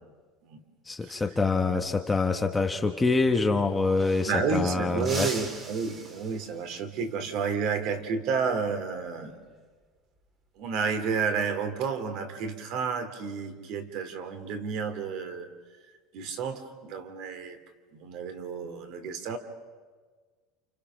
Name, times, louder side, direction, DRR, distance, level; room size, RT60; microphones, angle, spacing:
voice 1, 0.9-5.3, left 3 dB, 10° left, 5 dB, 1.0 m, -25 dB
sound 1, 3.7-4.6 5.0-6.8 9.2-9.5 10.9-11.4, right 3 dB, 20° right, 2.4 m, -40 dB
voice 2, 4.3-9.4 10.6-15.5 16.1-17.6 17.9-19.4, right 5 dB, 45° right, 9 dB, 2.7 m, -31 dB
29.0 x 29.0 x 6.3 m, 1.5 s
cardioid pair, 175°, 0 cm